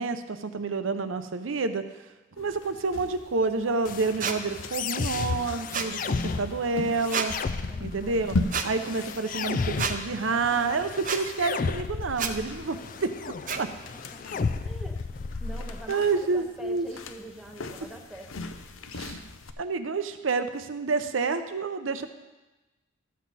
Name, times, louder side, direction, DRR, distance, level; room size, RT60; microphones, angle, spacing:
voice 1, 0.0-1.8 2.4-7.3 7.8-8.4 8.6-13.1 13.6-13.7 15.9-16.9 18.9-19.2 19.6-22.1, right 4 dB, 80° right, 9 dB, 0.7 m, -28 dB
sound 1, 2.4-19.5, left 2 dB, 85° left, 0.7 m, -39 dB
sound 2, 3.8-15.8, left 4 dB, 40° left, 0.3 m, -34 dB
sound 3, 4.2-4.4 5.7-5.9 7.1-7.3 8.5-8.7 9.8-10.0 11.0-11.2 12.2-12.3 13.5-13.6, right 6 dB, 40° right, 0.6 m, -28 dB
voice 2, 6.1-6.6 7.7-8.3 13.7-13.8 14.1-15.0 15.4-18.4, right 1 dB, ahead, 1 dB, 0.7 m, -45 dB
13.0 x 7.5 x 4.1 m, 1.1 s
head